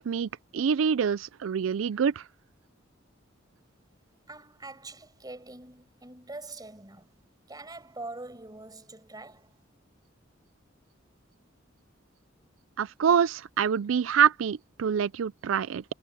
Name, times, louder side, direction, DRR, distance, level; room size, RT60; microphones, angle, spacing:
voice 1, 0.0-2.2 12.8-15.8, right 7 dB, 90° right, 0.4 m, -26 dB
voice 2, 4.3-7.2 7.5-9.6, right 2 dB, 20° right, 5.6 m, -44 dB
head